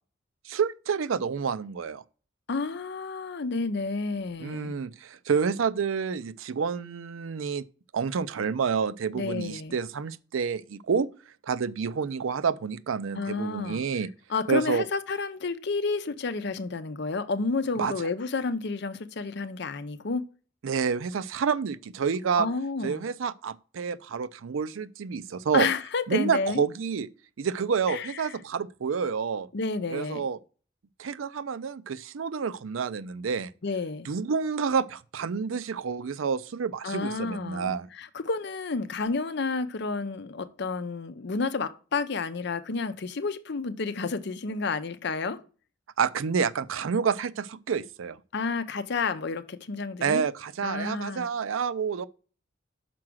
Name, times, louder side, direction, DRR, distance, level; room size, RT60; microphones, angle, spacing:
voice 1, 0.5-2.0 4.4-7.6 7.9-11.1 11.4-14.1 14.5-14.9 17.8-18.1 20.6-22.5 22.8-25.7 26.1-27.1 27.4-29.5 29.9-30.4 31.0-33.5 34.1-37.9 46.0-48.2 50.0-52.1, right 6 dB, 90° right, 0.5 m, -29 dB
voice 2, 2.5-4.8 9.1-9.8 13.1-13.8 14.3-20.3 22.4-23.1 25.5-26.6 27.9-28.4 29.5-30.3 33.6-34.1 36.8-45.4 48.3-50.2 50.6-51.3, left 4 dB, 60° left, 0.6 m, -30 dB
6.0 x 4.8 x 6.2 m
head